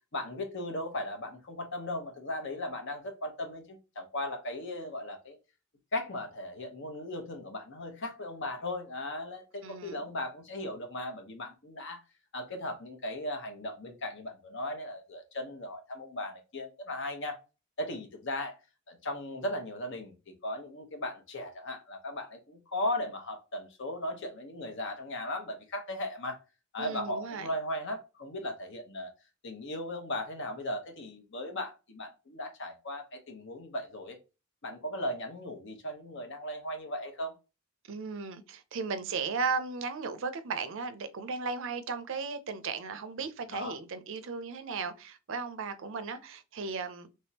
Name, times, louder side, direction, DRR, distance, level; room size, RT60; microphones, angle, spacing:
voice 1, 0.1-5.4 5.9-12.0 12.3-17.4 17.8-18.6 18.9-20.1 20.4-26.4 26.7-29.1 29.4-34.2 34.6-37.4 43.5-43.8, left 1 dB, 65° left, 1.0 m, -37 dB
voice 2, 9.6-10.0 26.8-27.5 37.9-47.1, right 5 dB, 65° right, 0.5 m, -36 dB
3.5 x 3.2 x 2.8 m
head